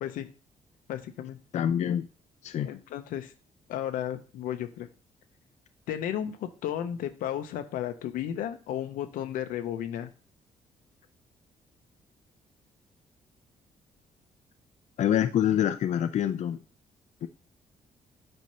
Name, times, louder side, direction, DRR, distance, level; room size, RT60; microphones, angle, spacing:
voice 1, 0.9-1.4 2.6-3.3 3.7-4.9 5.9-10.1, left 10 dB, 90° left, 0.7 m, -33 dB
voice 2, 1.5-2.1 2.4-2.7 15.0-16.6 17.2-17.3, left 10 dB, 60° left, 0.4 m, -26 dB
7.6 x 2.7 x 5.5 m
cardioid pair, 75°, 14 cm